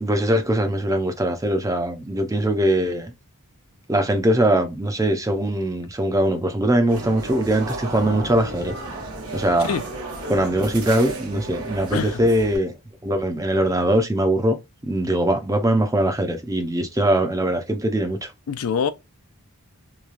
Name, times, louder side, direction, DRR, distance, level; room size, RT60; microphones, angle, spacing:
voice 1, 0.0-3.1 3.9-8.8 9.3-9.7 10.3-12.7 13.0-14.6 14.8-18.3, right 1 dB, 15° right, 0.5 m, -21 dB
sound 1, 6.9-12.6, right 3 dB, 70° right, 1.1 m, -34 dB
sound 2, 7.9-12.0, left 2 dB, 30° left, 0.6 m, -41 dB
voice 2, 11.9-12.3 18.5-18.9, left 6 dB, 75° left, 0.4 m, -25 dB
3.1 x 2.3 x 2.4 m
head